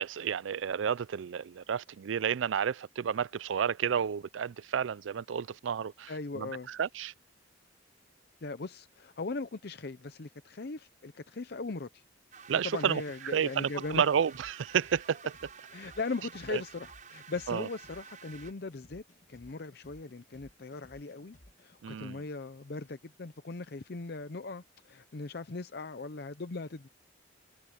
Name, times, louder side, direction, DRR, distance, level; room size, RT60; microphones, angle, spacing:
voice 1, 0.0-7.1 12.5-15.4 16.5-16.6 17.5-17.7 21.8-22.2, right 8 dB, 90° right, 0.4 m, -31 dB
voice 2, 6.1-6.7 8.4-12.0 12.6-14.0 15.7-19.0 19.3-26.9, left 3 dB, 60° left, 0.7 m, -39 dB
sound 1, 12.3-18.5, right 6 dB, 45° right, 5.7 m, -51 dB
sound 2, 13.8-21.8, equal, 40° left, 2.3 m, -58 dB
head